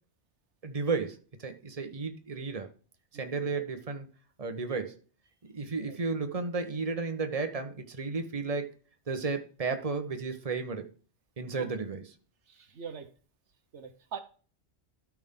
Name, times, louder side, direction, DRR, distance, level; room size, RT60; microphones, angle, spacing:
voice 1, 0.6-2.7 3.1-4.1 4.4-4.9 5.5-8.7 9.1-10.9 11.4-12.0, right 4 dB, 35° right, 1.3 m, -33 dB
voice 2, 3.1-3.5 5.7-6.0 11.6-11.7 12.7-13.1 13.7-14.2, right 7 dB, 90° right, 1.5 m, -41 dB
12.5 x 6.1 x 3.8 m
omnidirectional pair, 1.2 m